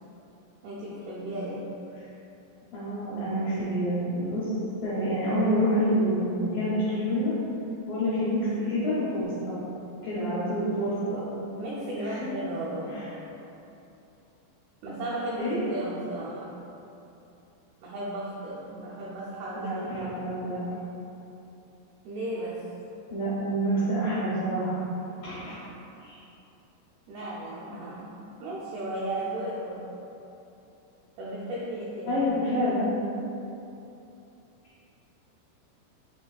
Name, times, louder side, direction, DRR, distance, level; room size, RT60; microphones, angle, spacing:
voice 1, 0.6-1.7 11.6-13.0 14.8-16.6 17.8-19.7 22.0-22.7 27.1-29.9 31.2-32.2, right 1 dB, 85° right, -7 dB, 2.2 m, -35 dB
voice 2, 2.7-4.5 4.8-7.3 7.9-9.6 10.0-11.2 12.0-12.2 12.9-13.1 15.4-15.6 19.6-20.6 23.1-24.8 25.2-25.7 26.0-26.2 27.2-27.3 32.1-32.9, equal, 80° left, -11 dB, 2.0 m, -27 dB
7.0 x 2.9 x 2.3 m, 2.9 s
omnidirectional pair, 5.0 m